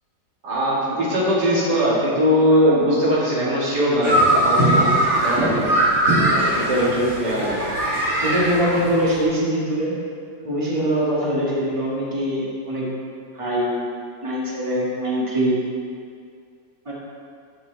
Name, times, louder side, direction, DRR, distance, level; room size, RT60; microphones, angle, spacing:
voice 1, 0.4-4.2 4.4-4.9 5.2-5.6 6.5-7.8, equal, 65° right, -6 dB, 2.6 m, -20 dB
sound 1, 4.0-9.2, right 1 dB, 40° right, 2.7 m, -20 dB
voice 2, 8.2-9.9 10.4-12.9 13.4-13.7 14.2-15.6 16.9-17.0, equal, 20° right, -6 dB, 1.7 m, -23 dB
13.0 x 5.6 x 4.0 m, 2.3 s
omnidirectional pair, 1.9 m